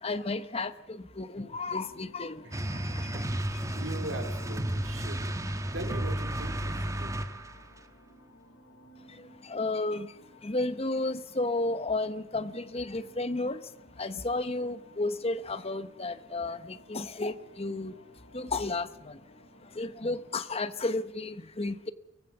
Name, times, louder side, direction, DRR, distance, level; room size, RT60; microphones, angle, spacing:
voice 1, 0.0-3.1 3.7-3.8 9.1-17.9 18.3-19.2 19.6-21.9, left 2 dB, 30° left, 12 dB, 1.0 m, -33 dB
sound 1, 1.4-20.4, left 1 dB, 80° left, 5.0 m, -57 dB
voice 2, 2.4-2.7 3.0-5.3 5.7-7.2, right 1 dB, 60° right, 6 dB, 3.7 m, -41 dB
sound 2, 2.5-7.7, right 1 dB, 15° right, 1.3 m, -33 dB
23.5 x 18.5 x 7.1 m, 0.92 s
head